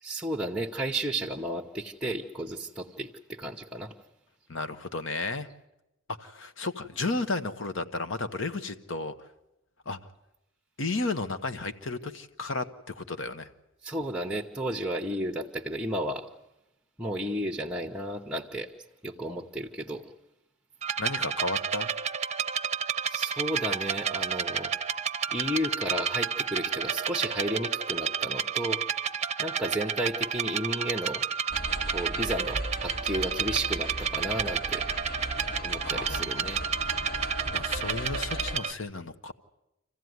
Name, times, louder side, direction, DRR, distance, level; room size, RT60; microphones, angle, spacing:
voice 1, 0.0-3.9 13.8-16.3 17.0-18.7 19.0-20.1 23.1-24.7 25.3-28.8 29.4-31.2 31.9-34.8 35.6-36.6, right 1 dB, 5° right, 1 dB, 0.9 m, -33 dB
voice 2, 4.5-5.5 6.2-9.1 9.9-10.0 10.8-13.5 21.0-21.9 35.8-36.7 37.2-39.3, left 3 dB, 70° left, 10 dB, 1.1 m, -33 dB
sound 1, 20.8-38.7, right 7 dB, 35° right, 0.8 m, -31 dB
sound 2, 31.5-38.6, equal, 50° left, 1.7 m, -37 dB
26.0 x 15.5 x 9.4 m, 0.92 s
head